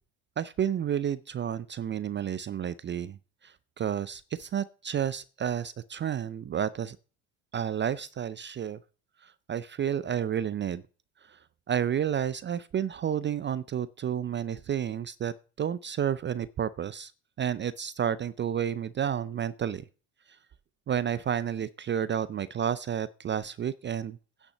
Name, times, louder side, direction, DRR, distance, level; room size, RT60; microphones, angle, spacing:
voice 1, 0.4-3.2 3.4-7.0 7.5-8.8 9.2-10.8 11.2-11.4 11.7-17.1 17.4-19.8 20.9-24.2, right 9 dB, 25° right, 17 dB, 0.5 m, -31 dB
9.9 x 6.0 x 6.6 m, 0.37 s
hypercardioid pair, 70°, 47 cm